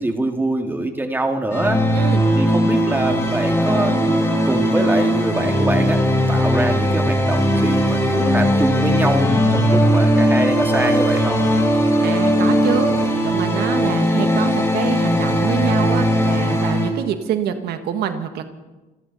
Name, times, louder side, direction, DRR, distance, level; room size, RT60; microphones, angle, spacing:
voice 1, 0.0-2.0 2.4-6.0 6.3-11.4, right 2 dB, 10° right, 4 dB, 2.2 m, -24 dB
sound 1, 1.5-16.9, equal, 15° left, 5.6 m, -18 dB
voice 2, 12.0-18.5, right 8 dB, 70° right, 8 dB, 1.5 m, -25 dB
27.5 x 12.0 x 4.2 m, 1.1 s
cardioid pair, 110°, 17 cm